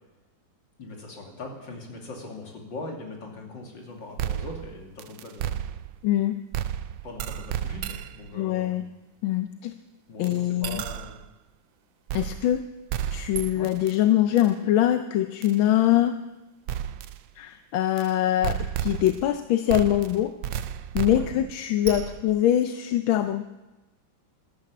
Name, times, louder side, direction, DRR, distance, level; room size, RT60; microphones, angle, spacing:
voice 1, 0.8-5.5 7.0-8.8 10.1-11.2 13.5-13.7 21.1-21.4, left 2 dB, 70° left, 0 dB, 3.3 m, -40 dB
sound 1, 4.2-6.1 6.5-8.3 10.2-10.3 10.6-11.2 12.1-12.6 12.9-13.9 14.4-14.5 15.4-15.5 16.7-17.2 18.0-18.1 18.4-19.4 19.7-22.4, right 10 dB, 80° right, 1.4 m, -32 dB
voice 2, 6.0-6.4 8.3-8.8 9.2-9.7 10.2-10.8 12.1-12.6 13.1-16.2 17.4-20.3 20.9-23.4, left 12 dB, 90° left, 8 dB, 1.5 m, -23 dB
12.5 x 12.5 x 8.6 m, 1.1 s
omnidirectional pair, 2.1 m